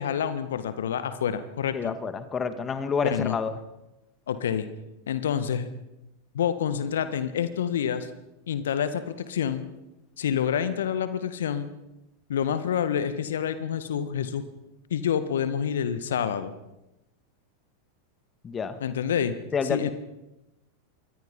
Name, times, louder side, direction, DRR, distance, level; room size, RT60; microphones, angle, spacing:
voice 1, 0.0-1.9 3.0-3.4 4.3-4.7 5.1-5.7 6.3-8.1 8.5-9.7 10.2-11.7 12.3-14.4 14.9-16.5 18.8-19.3 19.6-19.9, left 8 dB, 65° left, 11 dB, 1.8 m, -27 dB
voice 2, 1.7-3.5 18.4-18.8 19.5-19.9, left 5 dB, 20° left, 10 dB, 2.2 m, -28 dB
27.0 x 23.5 x 5.6 m, 0.95 s
figure-of-eight pair, 90°, 0 cm